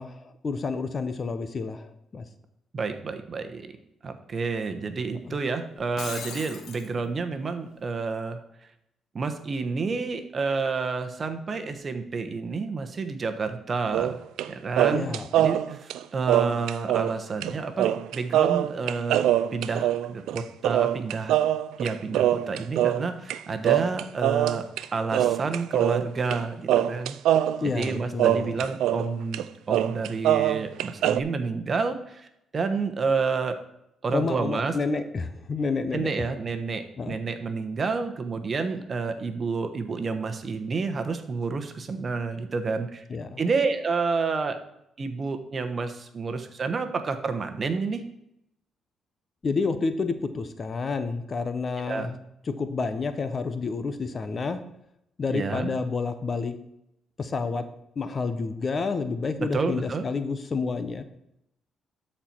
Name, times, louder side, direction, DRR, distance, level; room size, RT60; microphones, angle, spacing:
voice 1, 0.0-2.3 5.2-5.4 14.9-15.3 27.6-28.6 34.1-36.1 37.0-37.2 43.1-43.4 49.4-52.1 52.5-54.6 55.2-56.5 57.2-57.6 58.0-61.0, left 4 dB, 40° left, 10 dB, 0.8 m, -29 dB
voice 2, 2.7-3.7 4.0-8.4 9.1-14.2 14.5-21.4 21.8-24.6 24.9-27.2 27.6-32.3 32.5-33.6 34.0-34.7 35.9-43.0 43.4-44.6 45.0-48.0 51.8-52.1 55.3-55.7 59.4-60.0, right 4 dB, 40° right, 8 dB, 1.1 m, -29 dB
Shatter, 5.8-6.9, left 6 dB, 75° left, 1.3 m, -38 dB
sound 1, 13.9-14.5 14.8-17.1 17.4-17.5 17.8-23.4 23.6-24.8 25.1-26.4 26.7-29.1 29.3-29.4 29.7-31.2, right 12 dB, 85° right, 0.4 m, -24 dB
12.5 x 4.5 x 4.5 m, 0.80 s
cardioid pair, 90°, 0 cm